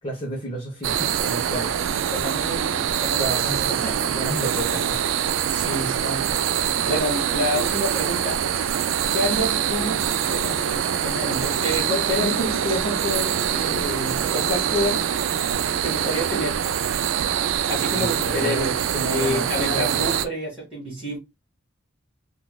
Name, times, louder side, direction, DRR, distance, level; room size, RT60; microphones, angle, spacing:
voice 1, 0.0-1.7 3.2-5.0 12.2-12.6 18.0-20.1, right 1 dB, 25° left, 0.9 m, -31 dB
sound 1, 0.8-20.3, right 9 dB, 75° right, 0.3 m, -24 dB
voice 2, 2.1-3.3 3.8-4.1 4.7-4.8 5.5-6.4 6.9-15.0 15.8-16.7 17.7-21.2, left 1 dB, 5° right, 1.5 m, -28 dB
sound 2, 9.4-14.5, equal, 50° right, 0.9 m, -39 dB
3.9 x 2.3 x 2.3 m
head